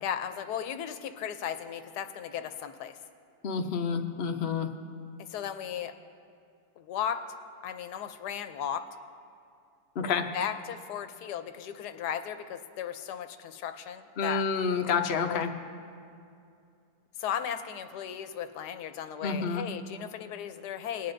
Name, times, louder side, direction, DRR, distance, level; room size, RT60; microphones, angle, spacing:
voice 1, 0.0-3.0 5.3-5.9 6.8-7.2 7.6-8.8 10.3-14.4 15.3-15.4 17.2-21.1, left 9 dB, 80° left, 9 dB, 1.2 m, -36 dB
voice 2, 3.4-4.7 10.0-10.2 14.2-15.5 19.2-19.6, left 5 dB, 55° left, 4 dB, 0.7 m, -29 dB
20.0 x 9.6 x 2.6 m, 2.5 s
omnidirectional pair, 1.7 m